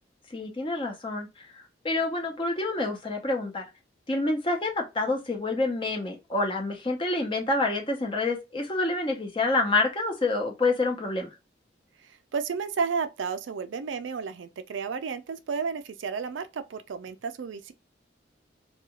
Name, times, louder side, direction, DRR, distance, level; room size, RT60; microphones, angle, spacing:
voice 1, 0.3-1.5 1.8-3.6 4.1-11.3, left 2 dB, 25° left, 0.7 m, -27 dB
voice 2, 12.0-17.7, right 5 dB, 90° right, 0.4 m, -32 dB
2.4 x 2.3 x 2.8 m
head